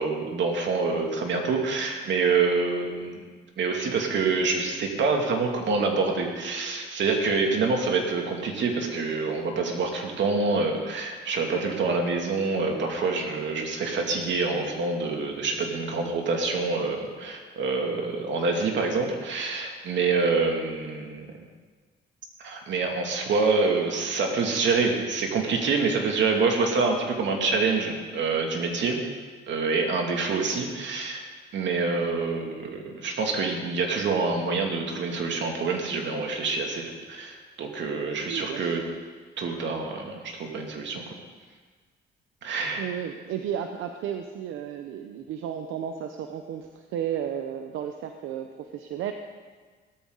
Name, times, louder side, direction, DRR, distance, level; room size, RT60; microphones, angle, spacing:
voice 1, 0.0-3.2 3.6-21.3 22.4-29.0 29.5-31.2 31.5-38.8 39.4-41.0 42.4-42.8, right 4 dB, 65° right, 1 dB, 2.6 m, -26 dB
voice 2, 38.2-38.8 42.7-49.1, right 9 dB, 90° right, 5 dB, 0.8 m, -33 dB
17.5 x 13.5 x 4.0 m, 1.5 s
cardioid pair, 90°, 20 cm